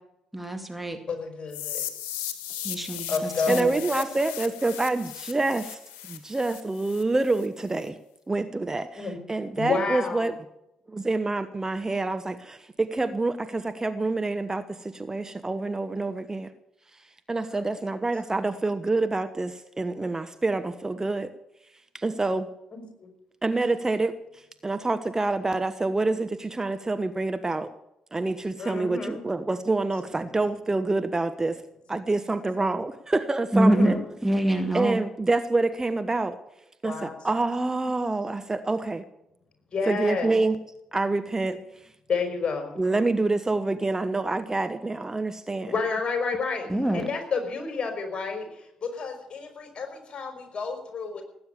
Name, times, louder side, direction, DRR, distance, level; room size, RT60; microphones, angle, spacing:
voice 1, 0.3-1.0 2.6-3.8 33.5-35.0 46.7-47.1, right 1 dB, 5° right, 6 dB, 2.2 m, -25 dB
voice 2, 1.1-1.9 3.1-4.0 9.0-9.2 9.6-10.2 17.4-17.7 22.7-23.1 28.6-29.2 33.6-34.0 36.8-37.2 39.7-40.3 42.1-42.8 45.7-46.7 46.9-51.2, left 4 dB, 40° left, 5 dB, 5.3 m, -30 dB
sound 1, 1.5-7.5, left 10 dB, 75° left, 1.6 m, -37 dB
voice 3, 3.5-5.8 6.1-8.0 8.3-10.3 10.9-16.5 16.9-21.3 21.9-22.5 23.4-27.7 28.1-31.6 31.9-34.0 34.7-36.4 36.8-39.0 39.9-40.6 40.9-41.9 42.8-45.7, right 2 dB, 20° right, 10 dB, 1.2 m, -27 dB
18.5 x 9.4 x 7.2 m, 0.83 s
figure-of-eight pair, 40°, 2 cm